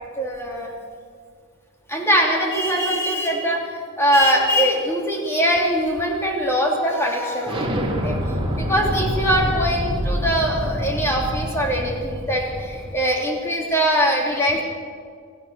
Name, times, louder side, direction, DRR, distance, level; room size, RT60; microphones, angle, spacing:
voice 1, 0.2-0.7 1.9-3.6 4.0-8.2 8.5-14.6, equal, 10° left, -1 dB, 3.0 m, -22 dB
Explosion, 7.5-13.0, equal, 25° right, 2.6 m, -26 dB
28.5 x 16.0 x 6.9 m, 2.1 s
head